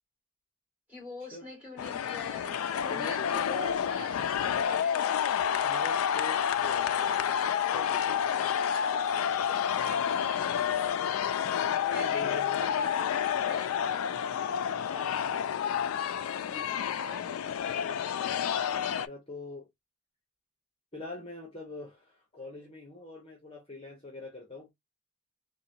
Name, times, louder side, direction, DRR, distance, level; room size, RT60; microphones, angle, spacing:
voice 1, 0.9-5.2 9.4-13.8 14.8-15.5 16.3-18.1, left 3 dB, 5° right, 2.5 m, -45 dB
sound 1, 1.8-19.1, left 8 dB, 90° left, 0.3 m, -29 dB
voice 2, 2.9-3.8 4.1-4.5 5.6-8.2 11.5-12.8 18.8-19.7 20.9-24.7, left 2 dB, 25° left, 0.9 m, -44 dB
3.8 x 2.2 x 2.6 m
head